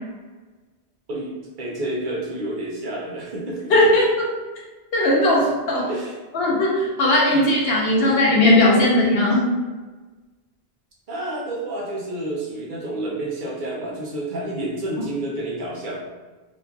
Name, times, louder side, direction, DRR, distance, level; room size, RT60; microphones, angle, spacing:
voice 1, 1.6-3.7 5.8-6.1 7.3-8.4 11.1-16.0, right 1 dB, 55° right, -4 dB, 0.7 m, -30 dB
voice 2, 3.7-4.3 4.9-5.9 6.3-9.5, left 1 dB, 70° left, -4 dB, 1.0 m, -18 dB
2.9 x 2.5 x 2.3 m, 1.3 s
omnidirectional pair, 1.1 m